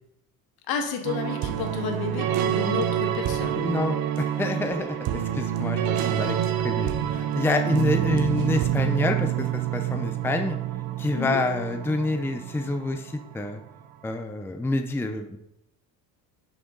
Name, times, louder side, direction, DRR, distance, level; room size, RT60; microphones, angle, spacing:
voice 1, 0.7-3.7 11.1-11.4, left 6 dB, 60° left, 5 dB, 1.9 m, -31 dB
sound 1, 1.0-13.6, right 11 dB, 60° right, 1.0 m, -27 dB
voice 2, 3.6-6.4 6.6-10.6 11.0-13.6 14.0-15.4, left 2 dB, 5° left, 6 dB, 0.6 m, -27 dB
10.5 x 6.4 x 3.9 m, 0.81 s
cardioid pair, 115°, 40 cm